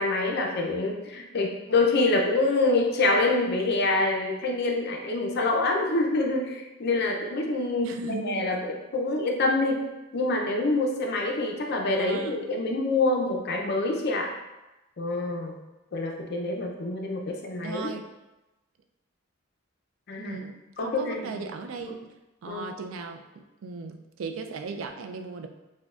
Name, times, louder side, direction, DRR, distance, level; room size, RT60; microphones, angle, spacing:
voice 1, 0.0-9.9 10.1-14.3 15.0-15.6 15.9-17.9 20.1-20.4 20.8-21.3 21.8-21.9 22.5-22.7, left 2 dB, 55° left, 1 dB, 0.5 m, -26 dB
voice 2, 7.8-8.6 12.0-12.5 17.3-17.4 17.6-18.0 20.2-22.0 22.4-25.5, right 4 dB, 75° right, 6 dB, 0.4 m, -37 dB
6.1 x 2.2 x 2.3 m, 1.0 s
head